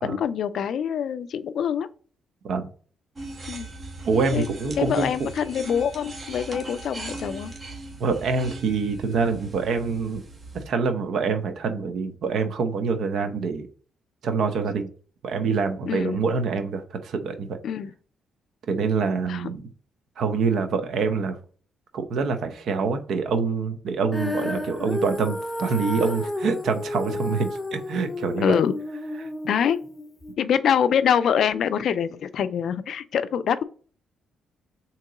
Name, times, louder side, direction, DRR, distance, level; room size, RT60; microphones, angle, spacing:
voice 1, 0.0-1.9 3.5-3.7 4.3-4.5 4.8-7.5 15.9-16.2 17.6-17.9 19.3-19.5 28.4-28.7 29.5-29.8 30.4-33.6, left 8 dB, 65° left, 0.4 m, -24 dB
sound 1, 3.2-10.7, right 2 dB, 35° right, 1.1 m, -39 dB
voice 2, 4.1-5.1 8.0-10.2 10.5-13.7 14.2-14.9 15.2-17.6 18.7-19.7 20.2-21.4 21.9-28.5 29.2-29.3, right 5 dB, 70° right, 0.7 m, -25 dB
Female singing, 24.1-30.3, left 1 dB, 10° left, 0.6 m, -32 dB
3.8 x 2.9 x 4.8 m
cardioid pair, 90°, 0 cm